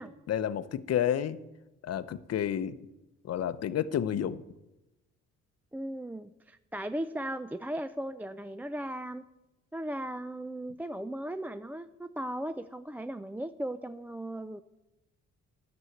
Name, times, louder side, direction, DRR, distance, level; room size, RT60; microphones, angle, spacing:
voice 1, 0.3-1.4 1.8-2.8 3.2-4.4, left 9 dB, 55° left, 14 dB, 0.7 m, -30 dB
voice 2, 5.7-9.2 9.7-14.6, right 1 dB, 5° right, 12 dB, 0.4 m, -37 dB
11.0 x 7.1 x 7.9 m, 0.97 s
cardioid pair, 90°, 30 cm